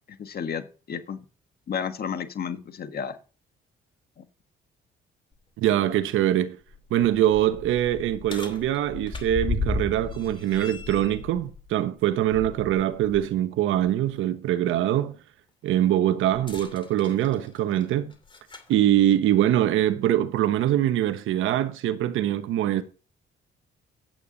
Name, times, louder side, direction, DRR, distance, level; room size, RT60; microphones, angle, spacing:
voice 1, 0.2-1.2 1.7-3.2, left 7 dB, 50° left, 1.6 m, -32 dB
sound 1, 5.3-5.4 5.9-6.0 6.6-13.3 13.7-13.9 16.3-18.7 19.7-19.8 20.6-20.7, left 3 dB, 25° left, 2.6 m, -35 dB
voice 2, 5.6-6.6 6.9-15.2 15.6-18.1 18.7-22.8, right 12 dB, 85° right, 1.0 m, -23 dB
10.5 x 8.4 x 4.0 m
cardioid pair, 90°, 20 cm